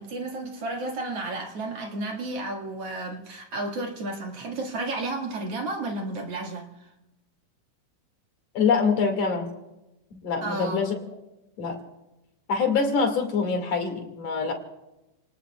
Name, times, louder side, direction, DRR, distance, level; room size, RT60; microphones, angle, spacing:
voice 1, 0.0-6.9 10.4-10.9, right 2 dB, 50° right, 1 dB, 3.0 m, -32 dB
voice 2, 8.5-9.5 10.1-11.0 11.6-11.8 12.5-14.5, left 5 dB, 55° left, 3 dB, 3.4 m, -25 dB
29.5 x 19.5 x 2.4 m, 0.97 s
omnidirectional pair, 3.6 m